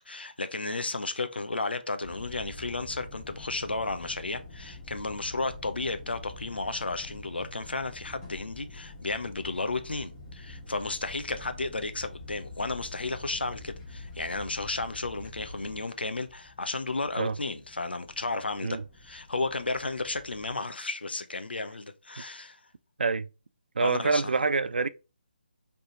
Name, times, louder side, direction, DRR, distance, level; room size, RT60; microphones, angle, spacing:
voice 1, 0.0-18.8 19.0-22.6 23.8-24.2, left 3 dB, 75° left, 0.6 m, -33 dB
sound 1, 2.0-20.5, left 2 dB, 15° left, 1.3 m, -46 dB
voice 2, 23.7-24.9, right 4 dB, 65° right, 0.4 m, -26 dB
4.0 x 3.4 x 2.8 m
figure-of-eight pair, 150°, 6 cm